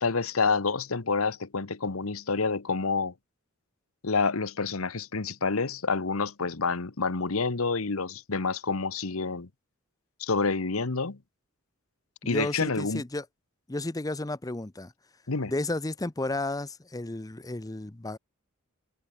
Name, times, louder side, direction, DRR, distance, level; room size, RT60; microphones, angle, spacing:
voice 1, 0.0-3.1 4.0-9.5 10.2-11.2 12.3-13.0 15.3-15.5, left 4 dB, 80° left, 1.2 m, -28 dB
voice 2, 12.2-13.2 13.7-14.9 15.5-18.2, left 2 dB, 15° left, 0.7 m, -32 dB
head